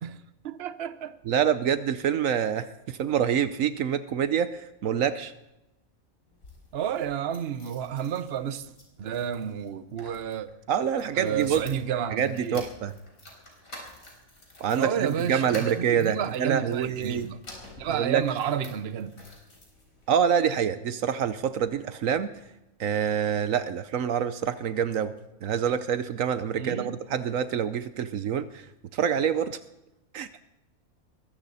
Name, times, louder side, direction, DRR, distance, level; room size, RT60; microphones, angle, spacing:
voice 1, 0.4-1.2 6.7-8.7 9.0-10.5 11.1-12.6 14.7-17.4 17.8-19.2 26.6-26.9, right 8 dB, 50° right, 1.0 m, -31 dB
voice 2, 1.3-5.3 10.7-11.6 12.1-12.9 14.6-17.3 17.9-18.2 20.1-22.3 22.8-25.1 25.4-28.7 28.9-29.6 30.1-30.4, right 8 dB, 75° right, 1.1 m, -26 dB
sound 1, 6.3-20.3 20.9-21.7 22.0-22.1 22.4-22.5, left 1 dB, 75° left, 4.4 m, -49 dB
21.5 x 15.5 x 4.1 m
omnidirectional pair, 1.4 m